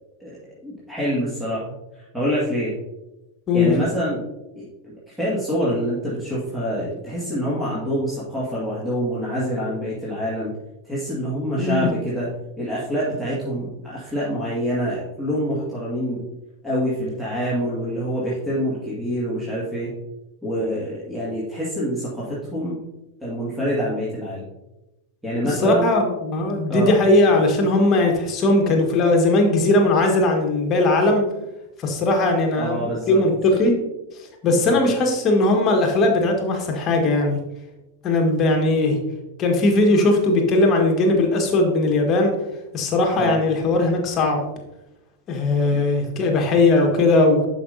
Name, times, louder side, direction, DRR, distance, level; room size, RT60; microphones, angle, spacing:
voice 1, 0.6-2.7 3.5-4.2 4.6-10.5 10.8-12.3 12.6-16.2 16.6-19.9 20.4-22.8 23.2-24.4 25.2-25.9 26.7-26.9 32.5-33.2 34.4-34.8 43.1-43.4, equal, 5° right, -8 dB, 2.1 m, -26 dB
voice 2, 25.6-31.2 31.8-32.8 33.1-33.7 34.4-37.4 38.0-39.0 39.4-42.3 42.7-44.4 45.3-47.5, left 2 dB, 30° left, 2 dB, 1.6 m, -19 dB
11.0 x 5.3 x 2.7 m, 0.97 s
figure-of-eight pair, 90°, 0 cm